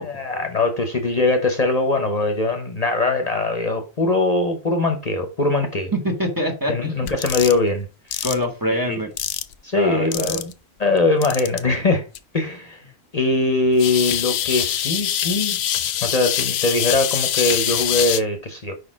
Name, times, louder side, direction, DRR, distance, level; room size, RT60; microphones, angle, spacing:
voice 1, 0.0-5.9 6.7-8.3 8.8-9.0 9.6-10.5 10.8-12.1 12.3-12.8 13.1-15.6 16.0-18.7, left 2 dB, 40° left, 0.9 m, -21 dB
voice 2, 5.9-7.1 8.2-9.1 9.7-10.4, equal, 20° right, 1.3 m, -25 dB
sound 1, 7.1-7.6 8.1-8.3 9.2-9.5 10.1-10.5 11.2-11.6 12.1-12.2 13.8-18.2, left 11 dB, 75° left, 0.8 m, -24 dB
5.0 x 4.2 x 4.9 m
omnidirectional pair, 1.1 m